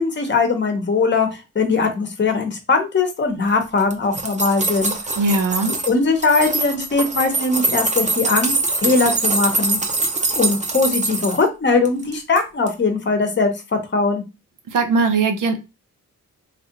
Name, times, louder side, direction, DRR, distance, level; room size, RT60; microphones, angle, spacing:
voice 1, 0.0-4.9 5.8-8.5 8.8-9.8 10.4-14.2, left 4 dB, 35° left, 0.8 m, -20 dB
sound 1, 3.8-5.9 6.2-11.4 11.9-12.4 12.7-12.8, right 3 dB, 25° right, 0.7 m, -23 dB
voice 2, 5.2-5.7 14.7-15.6, right 3 dB, 80° right, 0.7 m, -19 dB
3.4 x 2.4 x 2.8 m
wide cardioid pair, 110°, 31 cm